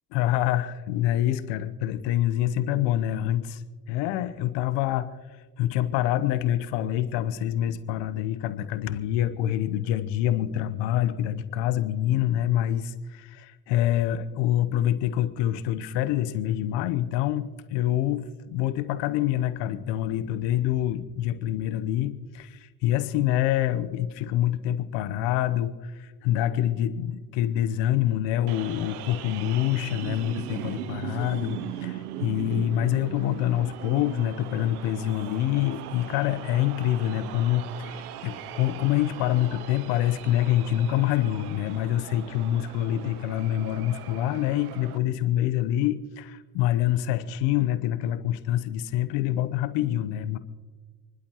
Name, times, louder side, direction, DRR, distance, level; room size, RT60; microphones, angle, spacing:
voice 1, 0.1-3.6 3.9-50.4, left 12 dB, 75° left, 13 dB, 1.0 m, -26 dB
sound 1, 28.5-45.0, right 11 dB, 90° right, 0.8 m, -39 dB
29.5 x 12.0 x 3.1 m, 1.3 s
hypercardioid pair, 60°, 43 cm